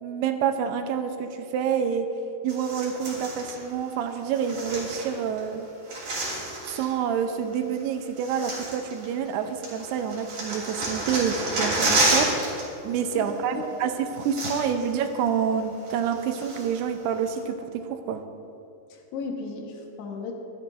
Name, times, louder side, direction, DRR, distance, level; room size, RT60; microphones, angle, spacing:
voice 1, 0.0-2.1 2.4-5.7 6.6-18.2, right 7 dB, 85° right, 7 dB, 2.7 m, -28 dB
sound 1, 2.5-3.6 4.3-5.4 5.7-6.9 7.7-7.8 8.2-9.3 9.6-12.6 12.9-13.1 13.9-14.0 14.2-14.9 15.3-15.4 15.9-16.8 17.4-17.5, right 2 dB, 45° right, 4.3 m, -29 dB
voice 2, 13.1-13.9 14.8-14.9 18.9-20.3, left 4 dB, 85° left, 1 dB, 3.4 m, -36 dB
24.5 x 10.5 x 2.6 m, 2.6 s
omnidirectional pair, 4.7 m